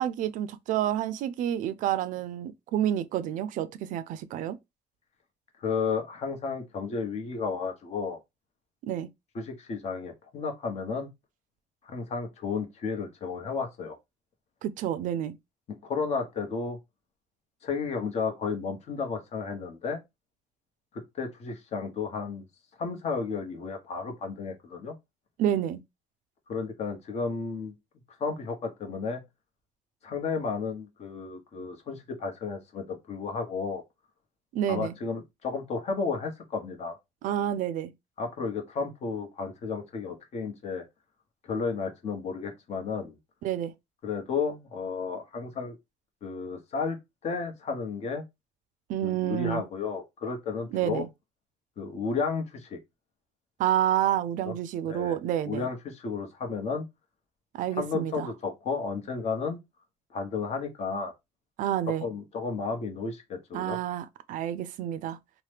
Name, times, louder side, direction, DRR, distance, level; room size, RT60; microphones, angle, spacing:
voice 1, 0.0-4.6 8.8-9.1 14.6-15.3 25.4-25.8 34.5-34.9 37.2-37.9 43.4-43.7 48.9-49.7 50.7-51.1 53.6-55.7 57.5-58.3 61.6-62.0 63.5-65.2, right 11 dB, 70° right, 0.4 m, -29 dB
voice 2, 5.6-8.2 9.3-11.1 11.8-14.0 15.8-16.8 17.6-20.0 21.1-22.5 22.8-24.9 26.5-27.7 28.2-29.2 30.0-33.8 34.7-37.0 38.2-40.8 41.4-43.1 44.0-45.8 46.2-47.0 47.2-48.2 49.0-51.1 51.8-52.8 54.4-54.5 54.9-55.2 55.5-56.8 57.8-59.6 60.1-61.1 62.0-63.8, left 5 dB, 50° left, 0.9 m, -32 dB
2.9 x 2.1 x 3.3 m
cardioid pair, 100°, 14 cm